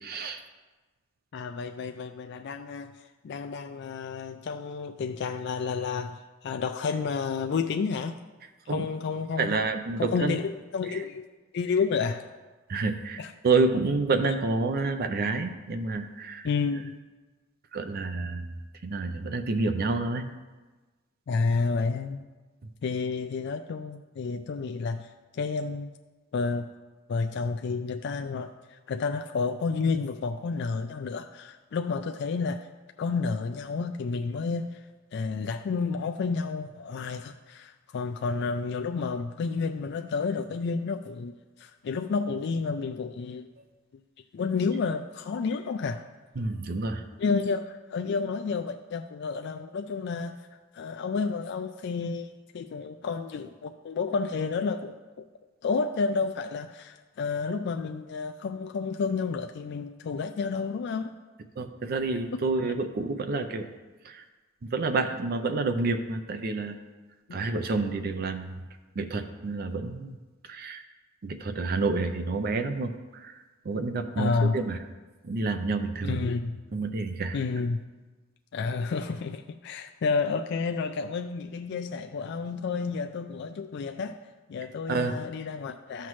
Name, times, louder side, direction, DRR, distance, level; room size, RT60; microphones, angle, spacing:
voice 1, 0.0-0.4 8.7-8.8 9.4-10.4 12.7-16.5 17.7-18.5 18.8-20.2 46.4-47.0 61.6-63.7 64.0-64.2 64.6-66.8 67.3-68.6 69.0-70.2 70.5-70.8 71.2-73.3 73.7-74.8 75.2-76.2 76.7-77.4 84.9-85.2, right 3 dB, 50° right, 7 dB, 0.5 m, -29 dB
voice 2, 1.3-8.2 8.7-9.6 10.0-11.3 11.5-12.3 13.2-13.3 14.2-14.3 16.4-16.9 21.3-22.3 22.8-25.9 26.3-26.7 27.1-32.7 33.0-34.9 35.1-43.5 44.3-46.0 47.2-50.4 50.7-52.3 52.5-55.3 55.6-61.1 74.2-74.6 76.0-76.6 77.3-77.8 78.5-84.2 84.5-86.1, left 4 dB, 55° left, 6 dB, 0.3 m, -30 dB
13.5 x 5.8 x 3.1 m, 1.3 s
head